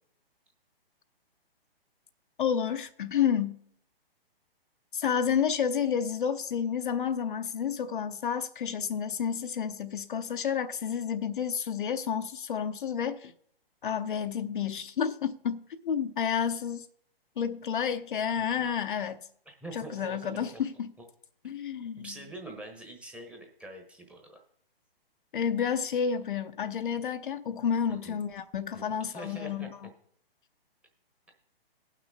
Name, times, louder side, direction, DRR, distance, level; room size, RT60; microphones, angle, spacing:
voice 1, 2.4-3.6 4.9-13.3 13.8-16.9 17.4-19.3 19.7-20.9 21.4-22.2 25.3-29.9, left 7 dB, 55° left, 0.8 m, -30 dB
voice 2, 18.4-18.7 19.5-20.6 22.0-24.4 27.9-28.2 28.7-29.7, right 1 dB, 5° right, 1.1 m, -45 dB
18.0 x 6.1 x 4.0 m
figure-of-eight pair, 135°, 30 cm